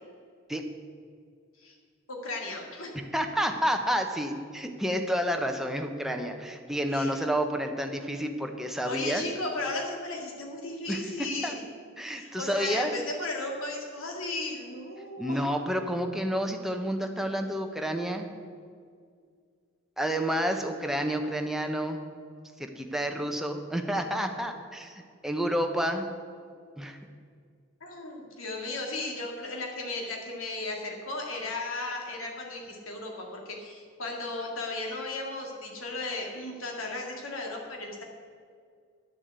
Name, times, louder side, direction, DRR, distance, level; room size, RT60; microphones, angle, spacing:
voice 1, 2.1-2.9 6.9-7.2 8.8-11.6 12.1-15.4 27.8-38.0, left 2 dB, 80° left, 0 dB, 2.2 m, -35 dB
voice 2, 3.1-9.2 10.9-11.6 12.0-12.9 15.2-18.3 20.0-22.0 22.6-26.1 26.8-27.0, equal, ahead, 4 dB, 0.9 m, -30 dB
11.0 x 7.1 x 8.2 m, 2.1 s
head